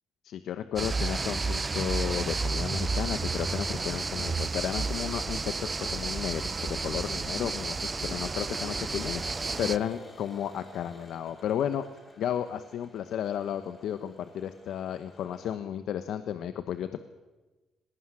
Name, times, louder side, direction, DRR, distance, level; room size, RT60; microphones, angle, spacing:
voice 1, 0.2-11.8 12.2-17.0, left 9 dB, 75° left, 10 dB, 1.1 m, -33 dB
sound 1, 0.8-9.8, right 3 dB, 30° right, 0.9 m, -31 dB
sound 2, 2.4-15.6, left 1 dB, 25° left, 5.7 m, -53 dB
19.0 x 18.5 x 10.0 m, 1.2 s
cardioid pair, 90°, 0 cm